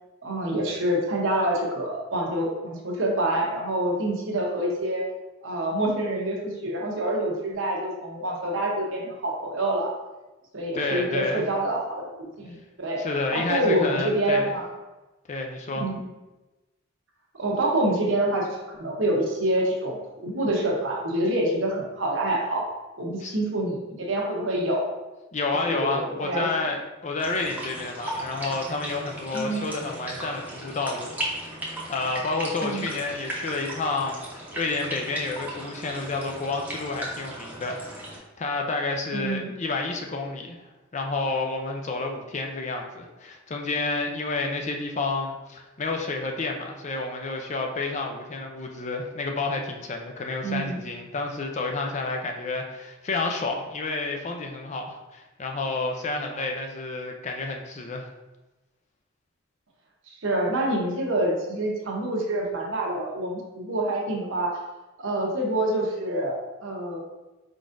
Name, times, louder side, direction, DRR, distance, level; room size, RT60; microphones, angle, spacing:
voice 1, 0.2-5.0 5.4-9.9 10.5-13.0 13.3-14.7 15.8-16.0 17.4-22.6 23.0-24.9 25.7-26.5 29.3-29.6 32.6-32.9 39.1-39.5 50.4-50.8 60.1-64.6 65.0-67.0, right 1 dB, 70° right, -1 dB, 0.9 m, -26 dB
voice 2, 10.7-11.5 13.0-14.5 15.3-15.8 23.2-23.4 25.3-31.6 31.9-34.3 34.6-37.8 38.4-40.6 40.9-58.1, left 3 dB, 35° left, 2 dB, 0.5 m, -30 dB
sound 1, 27.2-38.2, right 1 dB, 10° right, 0.8 m, -36 dB
4.7 x 3.8 x 2.6 m, 1.1 s
head